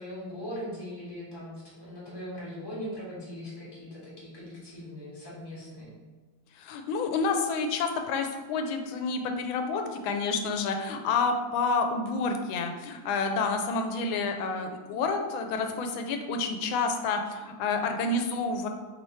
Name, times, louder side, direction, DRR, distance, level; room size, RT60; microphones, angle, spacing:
voice 1, 0.0-5.9 14.3-14.6, equal, 15° left, -7 dB, 1.2 m, -40 dB
voice 2, 6.6-18.7, left 4 dB, 85° left, 5 dB, 1.3 m, -29 dB
3.4 x 3.1 x 4.1 m, 1.4 s
omnidirectional pair, 2.1 m